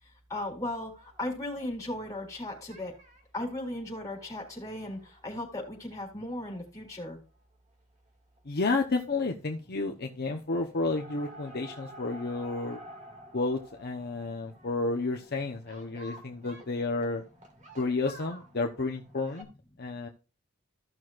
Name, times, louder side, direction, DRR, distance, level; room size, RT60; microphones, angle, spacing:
voice 1, 0.0-2.9 3.3-7.2, left 1 dB, 15° left, 0 dB, 3.8 m, -37 dB
sound 1, 0.8-2.4 2.7-3.2 3.7-5.8 6.2-6.3 6.5-6.6 6.9-7.0 8.4-8.6 8.8-9.3 9.6-10.1 10.5-19.4, right 1 dB, 35° right, 2.2 m, -51 dB
voice 2, 8.4-12.8 13.3-17.2 17.8-19.5 19.8-20.1, left 3 dB, 45° left, 2 dB, 0.9 m, -31 dB
15.0 x 6.2 x 2.5 m, 0.33 s
head